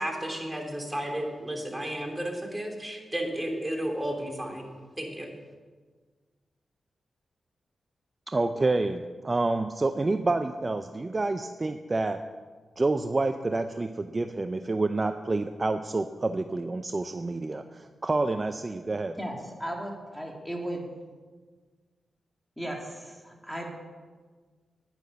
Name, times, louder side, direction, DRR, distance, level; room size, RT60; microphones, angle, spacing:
voice 1, 0.0-4.7 5.0-5.3, right 1 dB, 15° right, 1 dB, 3.4 m, -33 dB
voice 2, 8.3-12.2 12.8-19.2, right 2 dB, 35° right, 8 dB, 0.6 m, -28 dB
voice 3, 19.2-20.8 22.6-23.7, right 1 dB, 5° left, 0 dB, 3.2 m, -36 dB
10.5 x 9.1 x 6.8 m, 1.5 s
supercardioid pair, 45°, 0 cm